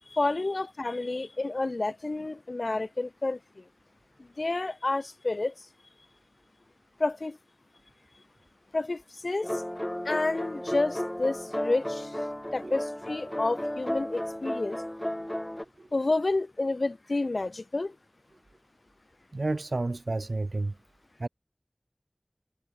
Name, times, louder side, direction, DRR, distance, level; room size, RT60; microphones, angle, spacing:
voice 1, 0.1-3.4 4.4-5.5 7.0-7.4 8.7-9.5 10.0-12.1 12.5-14.8 15.9-17.9, left 2 dB, 85° left, 0.9 m, -29 dB
sound 1, 9.4-15.7, left 1 dB, 20° left, 0.3 m, -34 dB
voice 2, 19.3-20.7 21.2-21.3, right 2 dB, 85° right, 0.5 m, -30 dB
wide cardioid pair, 40°, 0 cm